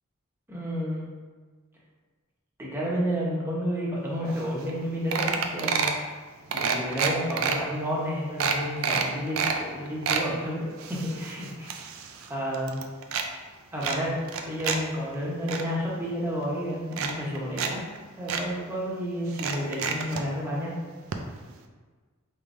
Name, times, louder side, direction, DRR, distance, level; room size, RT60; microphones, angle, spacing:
voice 1, 0.5-1.1 2.6-6.1 6.5-11.7 12.3-12.8 13.7-14.1 14.4-17.8 18.2-20.7, equal, 10° right, -5 dB, 0.8 m, -31 dB
Mouse wheel scrolling, 4.4-4.5 4.7-4.8 5.1-6.0 6.5-7.6 8.0-8.1 8.4-9.6 9.9-10.3 10.8-12.3 12.5-13.3 13.8-14.8 15.1-15.6 16.4-16.5 16.9-17.7 18.0-18.1 18.3-18.4 19.3-20.2 21.1-21.2 21.5-21.6, right 6 dB, 70° right, 0.4 m, -28 dB
4.4 x 3.4 x 2.5 m, 1.4 s
head